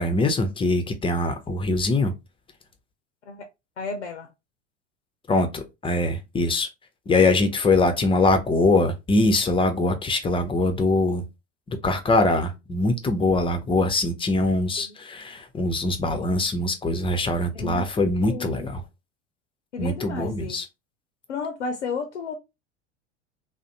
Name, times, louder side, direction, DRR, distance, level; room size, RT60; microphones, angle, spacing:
voice 1, 0.0-2.1 5.3-6.7 7.1-11.2 11.8-18.8 19.8-20.6, left 2 dB, 15° left, 0.5 m, -23 dB
voice 2, 3.8-4.3 5.3-5.5 14.8-15.0 17.5-18.7 19.7-20.6 21.3-22.3, left 4 dB, 90° left, 0.5 m, -33 dB
2.5 x 2.0 x 2.7 m
hypercardioid pair, 80°, 34 cm